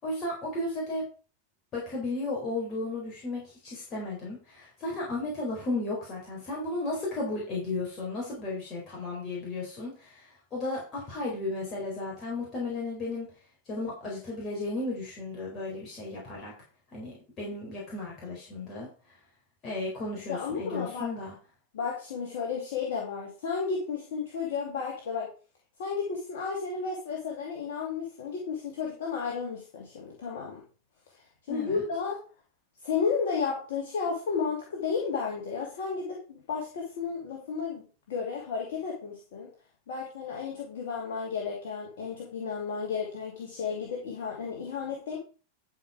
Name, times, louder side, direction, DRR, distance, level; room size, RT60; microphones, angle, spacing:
voice 1, 0.0-1.0 1.7-13.3 13.7-16.5 16.9-18.9 19.6-21.3 31.5-31.8, left 2 dB, 30° left, -4 dB, 4.1 m, -34 dB
voice 2, 20.3-21.1 21.7-25.3 25.8-30.6 31.5-32.2 32.8-37.8 38.1-39.5 39.9-45.2, left 5 dB, 55° left, -1 dB, 2.6 m, -33 dB
12.0 x 5.2 x 4.9 m, 0.37 s
figure-of-eight pair, 90°, 0 cm